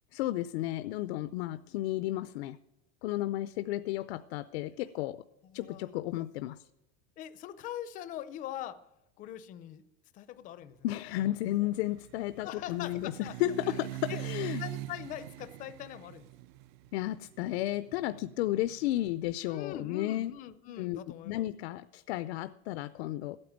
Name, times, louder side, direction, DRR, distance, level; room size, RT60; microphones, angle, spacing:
voice 1, 0.1-2.6 3.0-5.2 5.5-6.6 10.8-14.6 16.9-20.3 20.8-21.0 21.2-23.4, left 15 dB, 70° left, 14 dB, 0.6 m, -33 dB
voice 2, 5.4-5.9 7.2-8.8 9.2-9.8 10.1-10.8 11.2-11.3 11.6-11.7 12.4-13.4 13.6-14.2 14.6-16.3 19.5-21.5, left 11 dB, 25° left, 13 dB, 0.5 m, -42 dB
sound 1, 11.0-19.0, right 16 dB, 50° right, 0.4 m, -43 dB
14.5 x 8.9 x 9.2 m, 0.90 s
supercardioid pair, 170°, 33 cm